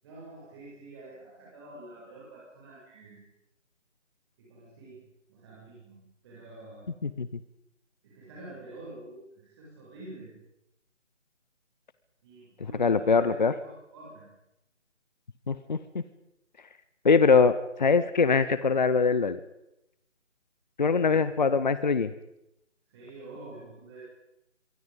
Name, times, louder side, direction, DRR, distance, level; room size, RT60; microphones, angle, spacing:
voice 1, 0.0-3.2 4.4-5.0 5.3-6.9 8.0-10.3 12.2-14.3 20.9-21.2 22.9-24.0, right 2 dB, 20° right, -6 dB, 7.4 m, -47 dB
voice 2, 12.8-13.5 15.5-16.0 17.0-19.4 20.8-22.1, left 5 dB, 35° left, 13 dB, 1.0 m, -23 dB
26.5 x 24.0 x 5.4 m, 0.84 s
figure-of-eight pair, 160°, 37 cm